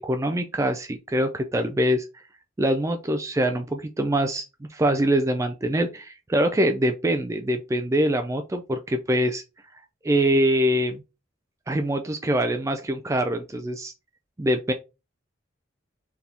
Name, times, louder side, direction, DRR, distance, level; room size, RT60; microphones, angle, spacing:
voice 1, 0.0-2.1 2.6-4.5 4.7-9.4 10.0-11.0 11.7-13.9 14.4-14.7, right 1 dB, 15° right, 7 dB, 0.3 m, -24 dB
4.6 x 3.4 x 2.9 m, 0.27 s
head